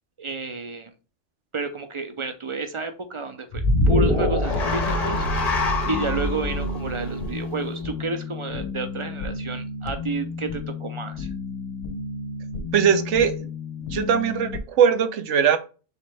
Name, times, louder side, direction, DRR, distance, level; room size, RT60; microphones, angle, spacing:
voice 1, 0.2-0.9 1.5-5.3 5.9-11.3, right 3 dB, 45° right, 7 dB, 0.4 m, -30 dB
sound 1, 3.5-7.9, left 1 dB, 40° left, 0.8 m, -24 dB
sound 2, 3.7-14.6, left 3 dB, 70° left, 0.8 m, -33 dB
voice 2, 12.7-13.5 13.9-15.6, right 7 dB, 75° right, 10 dB, 1.0 m, -20 dB
4.1 x 3.2 x 3.2 m, 0.34 s
omnidirectional pair, 1.2 m